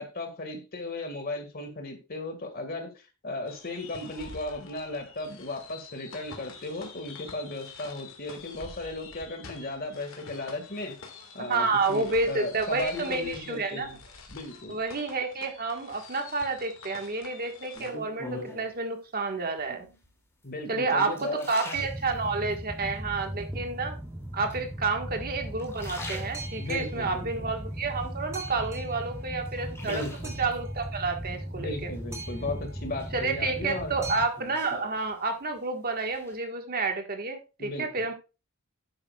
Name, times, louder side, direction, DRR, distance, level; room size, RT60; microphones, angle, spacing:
voice 1, 0.0-2.9 3.2-10.9 11.3-14.0 14.3-14.8 20.4-21.8 26.6-27.5 29.8-30.4 31.6-33.9 37.6-38.1, left 2 dB, 40° left, 6 dB, 1.9 m, -36 dB
sound 1, 3.5-17.9, left 4 dB, 60° left, 2.0 m, -47 dB
voice 2, 11.5-14.0 14.7-19.9 20.7-24.0 24.3-31.9 33.1-38.1, right 3 dB, 40° right, 4 dB, 1.6 m, -30 dB
sound 2, 17.8-18.8 19.6-20.1 20.6-22.6 23.1-23.7 24.5-25.2 25.5-26.8 27.3-28.5 28.9-30.6 31.9-32.5 33.0-35.6 35.9-36.4, left 2 dB, 10° left, 2.6 m, -44 dB
Boat Water vehicle, 21.7-34.2, right 1 dB, 15° right, 1.7 m, -37 dB
11.0 x 8.9 x 2.4 m, 0.30 s
head